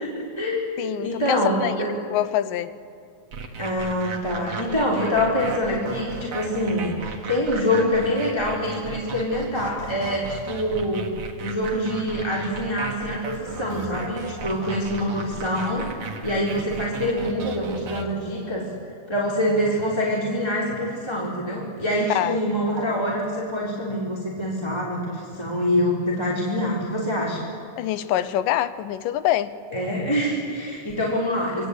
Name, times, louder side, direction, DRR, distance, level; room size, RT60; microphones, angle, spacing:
voice 1, 0.0-1.9 3.6-11.1 11.4-18.6 19.1-27.5 29.7-31.7, left 1 dB, 10° left, -5 dB, 3.4 m, -25 dB
voice 2, 0.8-2.7 22.2-22.4 27.8-29.6, left 12 dB, 85° left, 14 dB, 2.5 m, -25 dB
sound 1, 3.3-18.1, right 4 dB, 50° right, 2.3 m, -36 dB
27.0 x 21.5 x 8.3 m, 2.4 s
omnidirectional pair, 3.8 m